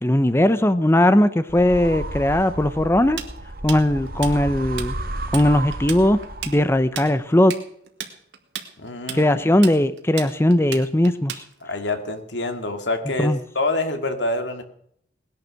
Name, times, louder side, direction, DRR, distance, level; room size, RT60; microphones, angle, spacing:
voice 1, 0.0-3.2 3.6-4.9 5.3-6.2 6.5-7.5 9.1-11.4 13.2-13.4, left 1 dB, 15° left, 12 dB, 0.6 m, -18 dB
sound 1, 1.5-6.8, right 1 dB, 55° right, 1.8 m, -32 dB
Tools, 3.2-4.9 5.2-5.5 5.7-11.8, right 8 dB, 80° right, 2.2 m, -33 dB
voice 2, 8.8-9.4 10.1-10.3 11.6-14.6, left 2 dB, 90° left, 7 dB, 2.2 m, -27 dB
19.5 x 11.0 x 6.4 m, 0.69 s
head